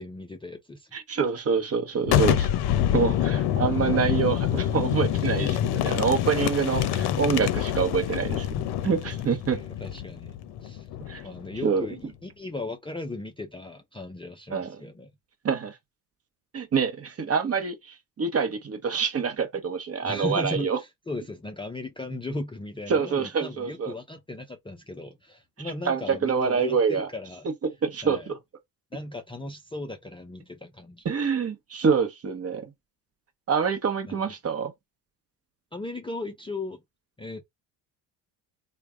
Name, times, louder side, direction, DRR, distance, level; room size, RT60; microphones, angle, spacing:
voice 1, 0.0-0.9 9.5-10.4 10.6-10.9 11.2-15.1 20.0-27.5 28.0-28.3 28.9-31.2 34.1-34.3 35.7-36.8 37.2-37.4, left 2 dB, 10° left, 0.5 m, -37 dB
voice 2, 0.9-2.5 2.9-8.5 8.8-9.6 11.1-11.2 11.6-11.9 14.5-14.8 15.4-15.8 16.5-20.8 22.9-23.9 25.6-27.1 27.6-28.4 31.0-32.7 33.5-34.7, right 6 dB, 30° right, 1.0 m, -26 dB
Boom, 2.0-11.6, left 11 dB, 60° left, 0.7 m, -26 dB
3.2 x 2.3 x 3.6 m
supercardioid pair, 90°, 44 cm